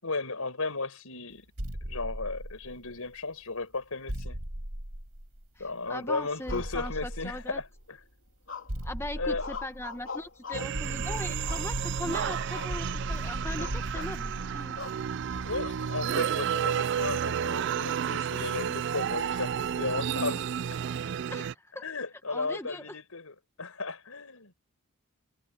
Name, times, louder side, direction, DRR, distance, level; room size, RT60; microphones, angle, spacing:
voice 1, 0.0-1.5 1.8-4.4 5.6-8.0 9.2-9.6 15.4-20.4 21.8-24.5, left 3 dB, 80° left, 4.7 m, -35 dB
sound 1, 1.6-3.1 4.1-5.7 6.5-7.8 8.7-10.3 10.7-16.0, equal, 85° right, 5.2 m, -38 dB
voice 2, 5.6-7.6 8.8-14.8 21.3-21.8 22.3-22.9, left 1 dB, 10° left, 0.9 m, -39 dB
sound 2, 6.5-7.5 8.5-8.9 9.4-10.8 11.5-12.1 12.5-12.8 13.1-13.2 13.6-14.2 14.8-15.0 15.6-16.3, left 4 dB, 60° left, 3.1 m, -42 dB
sound 3, 10.5-21.5, right 8 dB, 50° right, 0.3 m, -31 dB
head